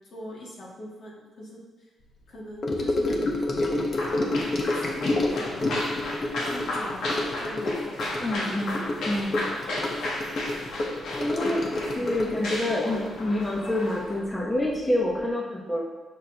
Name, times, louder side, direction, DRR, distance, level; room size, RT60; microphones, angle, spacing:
voice 1, 0.1-1.6 2.3-3.2 4.7-5.9 6.4-8.0, equal, 65° left, -5 dB, 2.0 m, -42 dB
Gurgling / Sink (filling or washing) / Trickle dribble, 2.6-14.3 14.5-14.9 15.1-15.2, left 2 dB, 45° left, 0.9 m, -29 dB
sound 1, 3.9-14.2, left 2 dB, 80° left, 1.4 m, -34 dB
voice 2, 8.2-8.7 9.0-9.4 11.1-11.6 12.0-15.8, left 1 dB, 15° left, -4 dB, 1.0 m, -27 dB
6.5 x 6.5 x 2.9 m, 1.2 s
cardioid pair, 125°, 0 cm